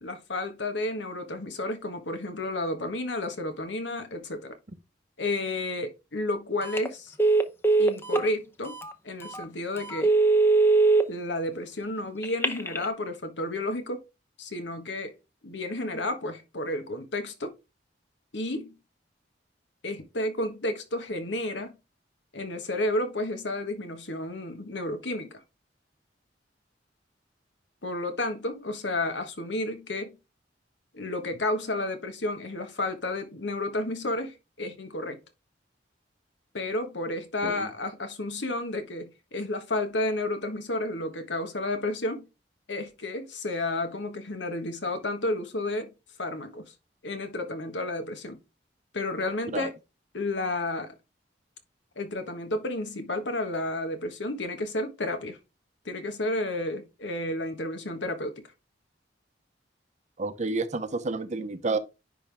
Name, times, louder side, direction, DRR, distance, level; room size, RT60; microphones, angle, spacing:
voice 1, 0.0-4.6 5.2-7.1 7.8-8.8 9.0-10.2 11.1-14.0 14.4-15.1 15.4-17.5 18.3-18.8 19.8-21.7 22.3-25.3 27.8-30.2 30.9-35.2 36.5-42.3 42.7-45.9 46.2-46.7 47.0-48.4 48.9-49.7 50.1-50.9 52.0-55.4 55.8-58.4, left 2 dB, 80° left, 1.4 m, -31 dB
Telephone, 6.6-6.9 7.2-8.3 8.8-8.9 9.3-9.4 9.9-11.0 12.2-12.8, right 3 dB, 15° left, 0.7 m, -21 dB
voice 2, 60.2-61.8, right 3 dB, 40° right, 0.7 m, -30 dB
10.0 x 3.6 x 3.4 m
head